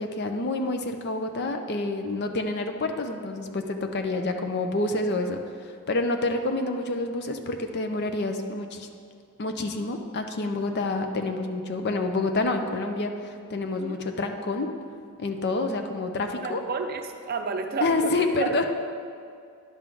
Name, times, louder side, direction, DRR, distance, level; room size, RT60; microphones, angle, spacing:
voice 1, 0.0-8.9 9.4-14.7 15.2-16.6 17.8-18.6, left 2 dB, 50° left, 6 dB, 0.5 m, -28 dB
voice 2, 16.4-18.1 18.4-18.5, right 5 dB, 45° right, 5 dB, 0.5 m, -31 dB
10.5 x 3.7 x 6.1 m, 2.4 s
head